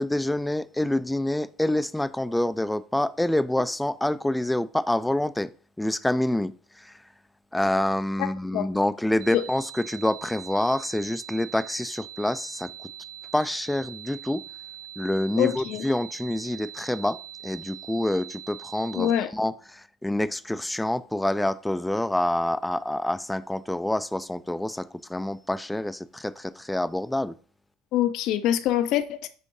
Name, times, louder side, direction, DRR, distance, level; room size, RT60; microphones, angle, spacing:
voice 1, 0.0-5.5 5.8-6.5 6.8-6.9 7.5-12.7 13.3-14.4 15.0-17.2 17.4-27.3, left 1 dB, 5° left, 0.4 m, -27 dB
sound 1, 9.2-19.2, right 12 dB, 85° right, 0.6 m, -43 dB
voice 2, 15.4-15.8 18.9-19.3 27.9-29.3, left 12 dB, 65° left, 0.6 m, -24 dB
9.7 x 3.7 x 2.7 m
supercardioid pair, 115°, 0 cm